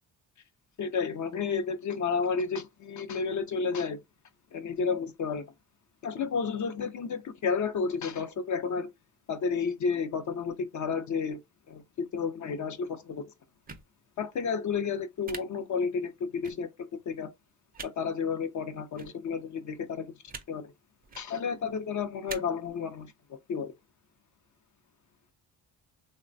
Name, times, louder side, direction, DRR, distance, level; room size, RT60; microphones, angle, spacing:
voice 1, 0.8-4.0 4.5-5.4 6.0-8.9 9.3-11.4 11.7-13.2 14.2-16.7 17.1-17.3 17.8-20.1 20.5-20.7 21.2-23.1 23.5-23.7, left 5 dB, 50° left, 0.5 m, -31 dB
sound 1, 13.7-13.8 15.2-15.4 16.4-16.5 17.7-17.9 18.9-19.1 20.3-20.4 21.0-21.2 22.3-22.4, right 4 dB, 25° right, 0.5 m, -41 dB
3.1 x 2.1 x 2.5 m
cardioid pair, 90°, 40 cm